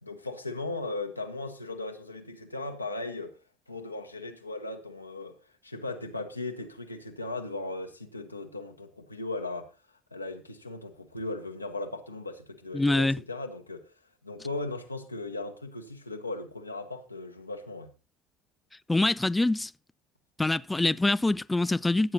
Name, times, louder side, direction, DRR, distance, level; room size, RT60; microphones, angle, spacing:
voice 1, 0.0-3.4 3.7-5.4 5.6-9.7 10.1-13.9 14.2-17.9, left 2 dB, 90° left, 1.2 m, -37 dB
voice 2, 12.7-13.2 18.9-19.7 20.4-22.1, left 2 dB, 15° left, 0.5 m, -25 dB
15.5 x 8.8 x 4.2 m
figure-of-eight pair, 60°, 0 cm